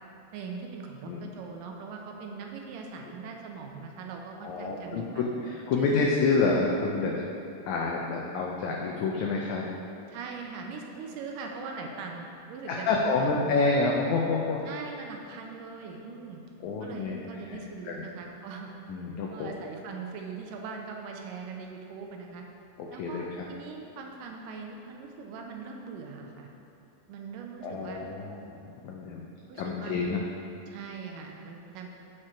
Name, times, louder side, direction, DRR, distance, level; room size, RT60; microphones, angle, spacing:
voice 1, 0.3-5.3 5.8-6.1 10.1-13.8 14.7-16.4 16.8-18.7 19.3-22.4 22.9-26.5 27.1-28.1 29.5-30.1 30.7-31.9, right 5 dB, 80° right, 2 dB, 2.1 m, -41 dB
voice 2, 4.4-7.2 7.7-9.7 12.7-14.6 16.6-17.2 17.5-18.0 18.9-19.5 23.0-23.5 27.6-28.6 28.8-29.2 29.6-30.2, left 3 dB, 90° left, -1 dB, 1.6 m, -28 dB
8.8 x 5.0 x 4.4 m, 2.7 s
omnidirectional pair, 4.0 m